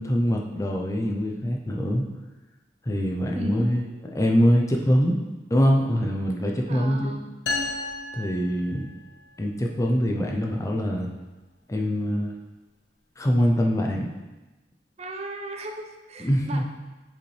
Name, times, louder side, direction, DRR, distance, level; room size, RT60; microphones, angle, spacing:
voice 1, 0.0-2.0 2.8-3.8 4.1-5.2 5.5-7.2 8.1-8.9 9.4-11.1 11.7-12.3 13.2-14.1 16.2-16.6, equal, 20° left, 1 dB, 0.6 m, -23 dB
voice 2, 3.3-3.8 6.7-7.3 15.0-16.6, right 2 dB, 35° right, 4 dB, 0.5 m, -36 dB
sound 1, 7.5-9.2, left 3 dB, 75° left, 1.1 m, -32 dB
7.2 x 5.2 x 3.3 m, 1.1 s
head